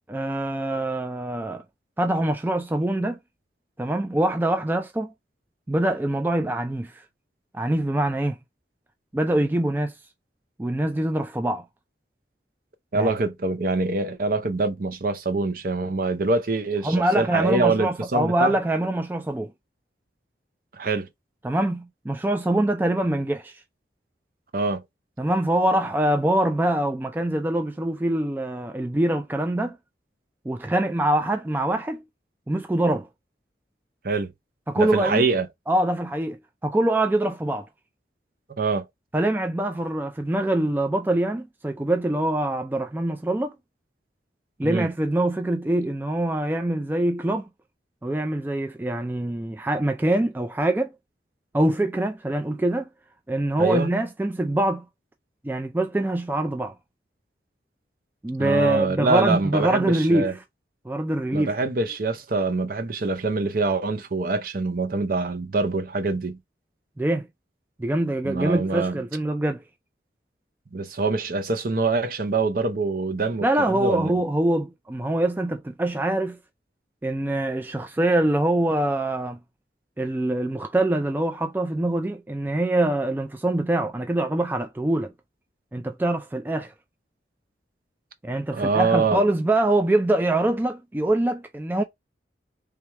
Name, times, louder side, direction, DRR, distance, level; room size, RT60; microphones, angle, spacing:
voice 1, 0.1-1.6 2.0-3.2 3.8-5.1 5.7-7.0 7.5-8.4 9.1-9.9 10.6-11.6 12.9-13.1 16.8-19.5 21.4-23.6 25.2-29.8 30.5-32.0 32.5-33.1 34.7-35.2 35.7-37.7 39.1-43.5 44.6-47.5 48.0-50.9 51.5-52.9 53.3-54.8 55.4-56.7 58.2-60.3 60.9-61.6 67.0-67.3 67.8-69.6 73.4-76.4 77.0-79.4 80.0-85.1 85.7-86.7 88.2-91.8, right 1 dB, 10° right, 0.3 m, -24 dB
voice 2, 12.9-18.5 20.7-21.1 24.5-24.8 34.0-34.3 34.7-35.5 38.6-38.8 44.6-44.9 53.6-53.9 58.4-60.3 61.3-66.4 68.2-69.0 70.7-74.2 88.5-89.2, right 3 dB, 55° right, 0.7 m, -25 dB
3.4 x 3.2 x 3.4 m
head